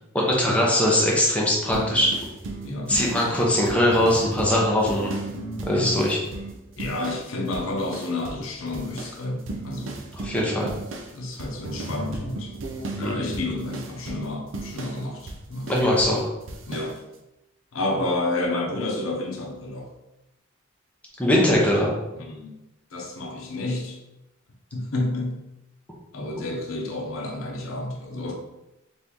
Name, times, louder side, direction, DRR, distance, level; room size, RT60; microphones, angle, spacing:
voice 1, 0.1-2.1 2.9-5.1 5.6-6.2 10.2-10.7 12.9-13.1 15.7-16.2 21.2-21.9, left 1 dB, 5° left, -4 dB, 0.6 m, -21 dB
sound 1, 1.7-7.3 7.5-8.5 8.7-16.2 16.5-16.9, right 2 dB, 65° right, 0.5 m, -35 dB
voice 2, 2.6-3.0 5.7-6.0 6.8-10.0 11.1-12.5 12.9-16.1 16.7-17.0 17.7-19.9 22.1-22.6 22.9-24.0 24.7-25.4 26.1-28.3, left 2 dB, 75° left, 1 dB, 0.6 m, -30 dB
2.9 x 2.6 x 3.5 m, 0.95 s
head